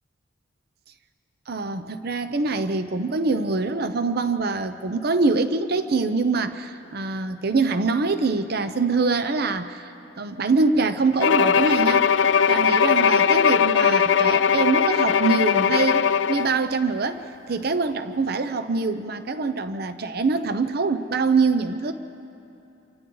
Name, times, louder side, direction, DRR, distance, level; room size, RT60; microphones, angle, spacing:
voice 1, 1.5-12.1 12.5-21.9, right 3 dB, 55° right, 10 dB, 0.7 m, -24 dB
Bowed string instrument, 11.2-16.6, left 7 dB, 80° left, 0.5 m, -19 dB
29.0 x 25.5 x 3.9 m, 2.8 s
head